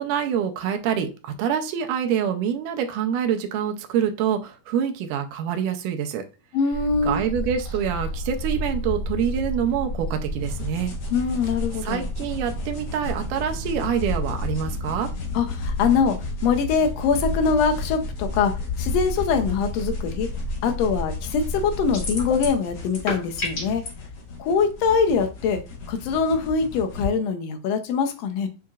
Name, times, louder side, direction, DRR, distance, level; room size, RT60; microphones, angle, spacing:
voice 1, 0.0-6.3 7.0-10.9 11.8-15.1, right 8 dB, 85° right, 5 dB, 2.2 m, -26 dB
voice 2, 6.5-7.2 11.1-12.0 15.3-16.2 16.4-18.5 18.8-20.3 20.6-23.8 24.4-25.6 25.9-28.5, left 5 dB, 75° left, 5 dB, 1.5 m, -23 dB
sound 1, 6.7-22.5, left 1 dB, 20° right, 0.8 m, -31 dB
sound 2, 10.4-27.1, left 4 dB, 60° left, 2.2 m, -38 dB
sound 3, 21.9-22.6 22.9-23.9, left 2 dB, 35° left, 1.8 m, -29 dB
7.3 x 2.8 x 2.4 m, 0.32 s
omnidirectional pair, 3.6 m